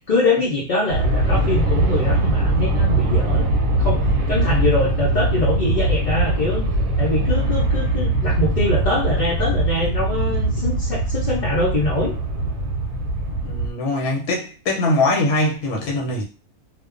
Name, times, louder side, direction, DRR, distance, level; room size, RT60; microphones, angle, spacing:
voice 1, 0.1-3.5 3.8-6.6 7.0-12.2, left 2 dB, 50° left, 0.6 m, -23 dB
Aircraft, 0.9-13.7, right 1 dB, 70° right, 1.0 m, -21 dB
voice 2, 13.4-16.2, left 2 dB, 85° left, 1.2 m, -22 dB
2.5 x 2.1 x 2.4 m
omnidirectional pair, 1.5 m